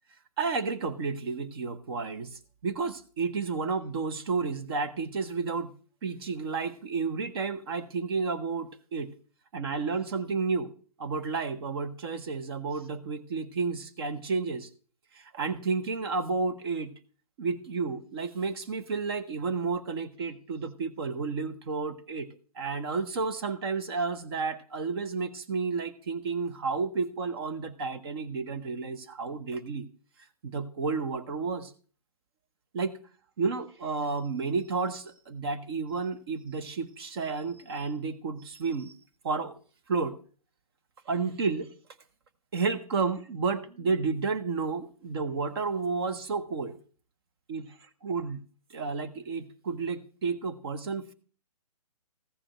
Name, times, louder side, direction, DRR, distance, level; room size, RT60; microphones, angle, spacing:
voice 1, 0.4-5.7 6.0-9.1 9.5-10.7 11.0-14.7 15.1-16.9 17.4-22.3 22.5-29.9 30.4-31.7 32.7-33.0 33.4-38.9 39.2-39.5 39.9-40.2 41.1-41.7 42.5-46.8 47.5-48.4 48.7-51.1, right 4 dB, 40° right, 11 dB, 1.0 m, -31 dB
14.5 x 5.0 x 6.0 m, 0.41 s
hypercardioid pair, 155°, 20 cm